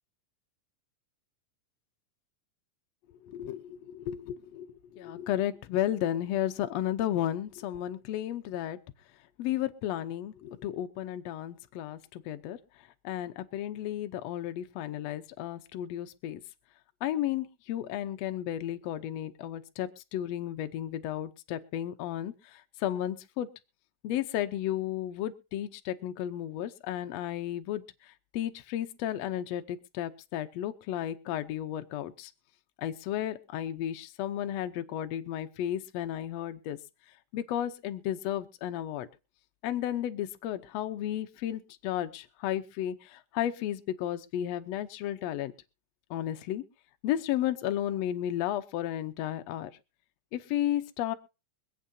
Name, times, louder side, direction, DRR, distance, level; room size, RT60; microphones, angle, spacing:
voice 1, 3.2-8.8 9.4-16.4 17.0-23.5 24.0-32.3 32.8-36.8 37.3-39.1 39.6-45.5 46.1-46.6 47.0-49.7 50.3-51.1, left 12 dB, 75° left, 8 dB, 1.5 m, -33 dB
25.0 x 8.4 x 2.7 m, 0.31 s
omnidirectional pair, 3.9 m